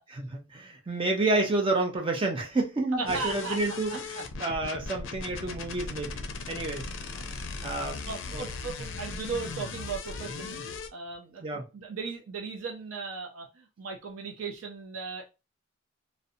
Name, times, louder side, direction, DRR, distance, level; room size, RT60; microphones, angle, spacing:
voice 1, 0.3-3.9 4.4-6.9 7.6-8.0 8.3-8.5 11.4-11.6, right 2 dB, 25° right, 0.4 m, -29 dB
voice 2, 2.9-3.6 3.9-4.2 6.5-6.6 7.0-7.2 8.1-10.6 10.9-15.3, right 4 dB, 80° right, 0.5 m, -37 dB
sound 1, 3.1-10.9, left 4 dB, 65° left, 0.4 m, -38 dB
2.6 x 2.1 x 2.5 m
head